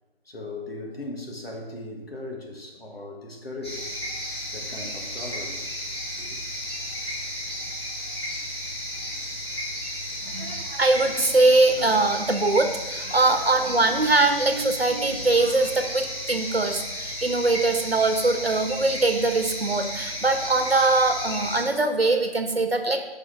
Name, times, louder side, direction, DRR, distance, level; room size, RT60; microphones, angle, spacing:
voice 1, 0.3-5.8 6.2-6.4, left 2 dB, 70° left, 0 dB, 1.8 m, -38 dB
sound 1, 3.6-21.6, equal, 25° left, 1.6 m, -33 dB
voice 2, 10.2-23.0, right 2 dB, 70° right, 6 dB, 1.2 m, -22 dB
sound 2, 11.2-12.0 13.0-13.3 13.9-15.4 15.7-16.3, right 2 dB, ahead, 1.3 m, -39 dB
7.8 x 5.6 x 4.7 m, 1.1 s
figure-of-eight pair, 170°, 31 cm